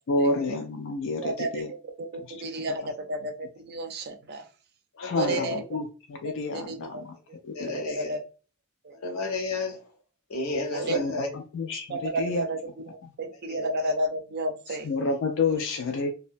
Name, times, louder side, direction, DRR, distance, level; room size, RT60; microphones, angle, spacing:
voice 1, 0.1-1.7 2.2-2.3 5.0-7.1 7.4-7.7 10.9-12.4 13.0-13.1 14.7-16.1, left 3 dB, 60° left, 3 dB, 0.4 m, -29 dB
voice 2, 1.2-1.6 2.0-4.4 5.2-5.6 6.5-7.0 8.0-8.2 8.8-9.0 10.7-11.0 11.9-12.6 12.9-14.9, right 2 dB, 50° right, 5 dB, 0.5 m, -31 dB
voice 3, 2.8-3.1 5.0-5.6 7.5-8.2 8.9-9.8 10.3-11.3 13.3-13.9, left 3 dB, 80° left, 4 dB, 0.8 m, -33 dB
2.6 x 2.1 x 2.5 m, 0.36 s
head